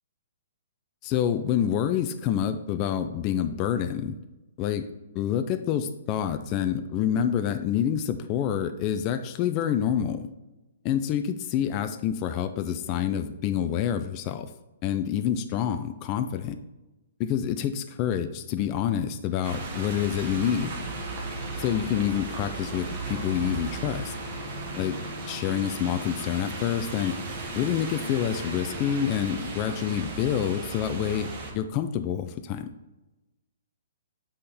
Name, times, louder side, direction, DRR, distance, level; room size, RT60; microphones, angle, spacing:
voice 1, 1.0-4.2 4.6-4.9 5.1-10.3 10.8-14.5 14.8-16.6 17.2-20.7 21.6-24.1 24.8-25.0 25.3-27.2 27.5-32.7, left 9 dB, 25° left, 8 dB, 0.3 m, -27 dB
sound 1, 19.4-31.5, right 3 dB, 35° right, 1.1 m, -36 dB
sound 2, 20.6-29.2, left 3 dB, ahead, 1.4 m, -43 dB
7.6 x 4.2 x 3.4 m, 1.0 s
hypercardioid pair, 170°, 0 cm